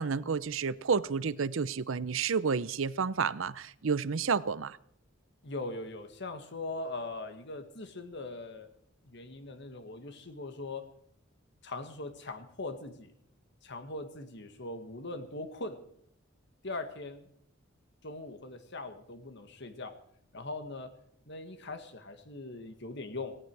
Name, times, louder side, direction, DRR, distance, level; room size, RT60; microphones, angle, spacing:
voice 1, 0.0-4.8, right 5 dB, 75° right, 0.6 m, -30 dB
voice 2, 5.4-8.7 9.0-10.8 11.6-13.1 13.6-15.8 16.6-17.3 18.0-20.0 20.3-20.9 21.3-23.4, left 2 dB, 60° left, 1.8 m, -41 dB
17.5 x 17.5 x 4.8 m
head